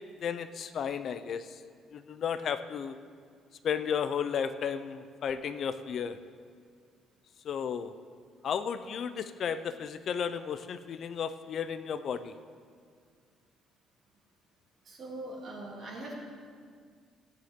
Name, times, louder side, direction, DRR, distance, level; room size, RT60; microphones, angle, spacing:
voice 1, 0.2-1.6 1.9-2.9 3.6-6.2 7.4-7.9 8.4-12.3, left 7 dB, 50° left, 11 dB, 0.5 m, -33 dB
voice 2, 14.8-16.2, right 1 dB, 45° right, -3 dB, 2.9 m, -41 dB
17.0 x 9.2 x 3.7 m, 2.1 s
cardioid pair, 125°, 0 cm